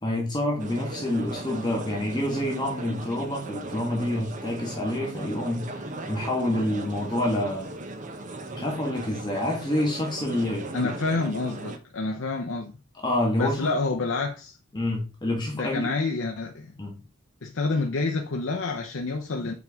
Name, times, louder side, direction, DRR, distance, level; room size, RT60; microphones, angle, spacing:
voice 1, 0.0-7.6 8.5-10.7 13.0-13.7 14.7-15.9 16.8-17.0, left 1 dB, 20° left, 1.4 m, -27 dB
sound 1, 0.6-11.8, right 2 dB, 35° right, 0.7 m, -38 dB
voice 2, 10.7-12.7 13.4-14.6 15.5-16.7 17.4-19.5, left 3 dB, 65° left, 0.7 m, -28 dB
7.4 x 4.5 x 3.5 m
head